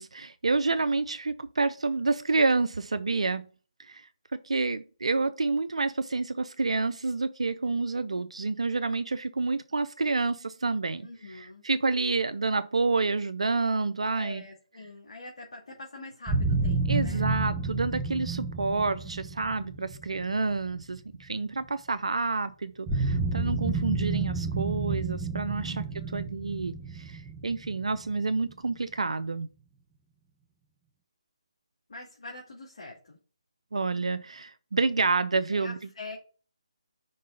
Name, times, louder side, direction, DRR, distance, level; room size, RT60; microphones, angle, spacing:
voice 1, 0.0-3.5 3.8-14.4 16.9-25.8 26.1-29.5 33.7-35.8, right 3 dB, 75° right, 0.5 m, -29 dB
voice 2, 11.0-11.6 14.1-17.3 25.6-26.2 31.9-33.2 35.5-36.2, left 2 dB, 70° left, 2.3 m, -44 dB
sound 1, 16.3-21.2 22.9-28.5, right 3 dB, 10° right, 1.1 m, -30 dB
5.4 x 3.8 x 5.2 m
figure-of-eight pair, 155°, 3 cm